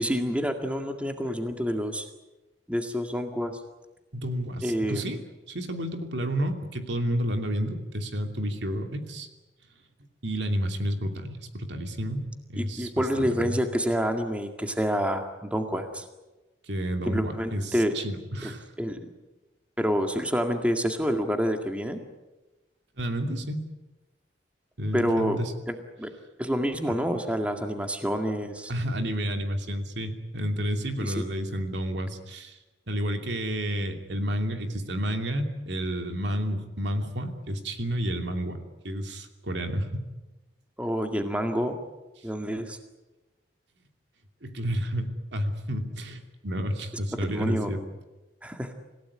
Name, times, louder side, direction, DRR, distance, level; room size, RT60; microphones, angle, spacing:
voice 1, 0.0-2.1 2.7-3.6 4.6-5.1 12.6-16.1 17.1-18.0 18.4-18.5 18.8-19.0 19.8-22.0 24.9-25.4 25.7-26.1 26.4-28.7 31.0-31.1 40.8-41.8 42.2-42.8 47.3-47.7 48.4-48.7, equal, 5° right, 5 dB, 1.9 m, -28 dB
voice 2, 4.1-5.2 5.5-9.3 10.2-12.2 12.5-12.9 13.2-13.6 16.6-18.7 23.0-23.6 24.8-25.5 28.7-32.6 32.9-40.1 44.4-47.8, equal, 75° right, 5 dB, 2.8 m, -30 dB
27.5 x 16.5 x 9.8 m, 1.1 s
head